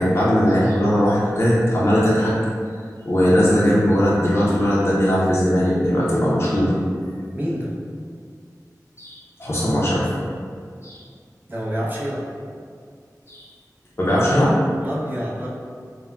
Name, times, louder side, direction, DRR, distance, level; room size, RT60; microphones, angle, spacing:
voice 1, 0.0-2.3 3.0-6.8 9.0-10.1 10.8-11.0 13.3-13.4 14.0-14.5, equal, 40° left, -8 dB, 0.5 m, -19 dB
voice 2, 7.3-7.7 11.5-12.3 14.8-15.5, equal, 30° right, -6 dB, 0.6 m, -27 dB
3.5 x 2.1 x 2.2 m, 2.1 s
wide cardioid pair, 60°, 7 cm